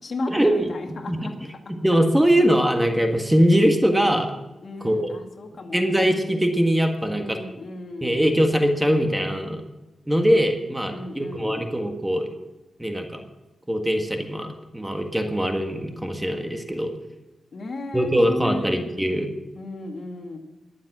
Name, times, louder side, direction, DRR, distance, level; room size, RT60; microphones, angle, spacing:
voice 1, 0.0-1.3 4.6-5.9 7.1-8.3 10.9-11.7 17.5-18.9 19.6-20.4, left 2 dB, 60° left, 3 dB, 2.1 m, -34 dB
voice 2, 1.8-4.3 4.8-5.1 5.7-7.4 8.0-9.6 10.1-12.3 12.8-13.2 13.7-14.5 14.7-16.9 17.9-19.3, equal, 10° right, 4 dB, 1.6 m, -21 dB
21.5 x 7.4 x 6.1 m, 1.1 s
wide cardioid pair, 90°, 0 cm